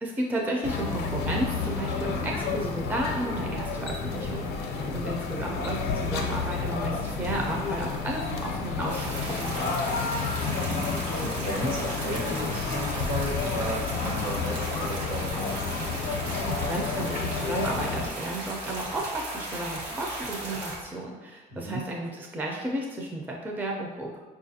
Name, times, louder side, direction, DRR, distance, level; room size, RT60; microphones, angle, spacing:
voice 1, 0.0-9.8 16.0-24.2, right 1 dB, 10° right, -1 dB, 0.4 m, -33 dB
sound 1, 0.6-18.1, left 5 dB, 75° left, 0.5 m, -31 dB
voice 2, 4.8-5.4 10.4-15.9 21.5-21.8, right 1 dB, 65° right, -3 dB, 1.2 m, -35 dB
sound 2, 6.0-20.8, right 1 dB, 50° right, 0.9 m, -48 dB
sound 3, 8.9-20.8, right 2 dB, 85° right, 0.9 m, -36 dB
4.6 x 2.4 x 2.7 m, 1.3 s
cardioid pair, 110°, 17 cm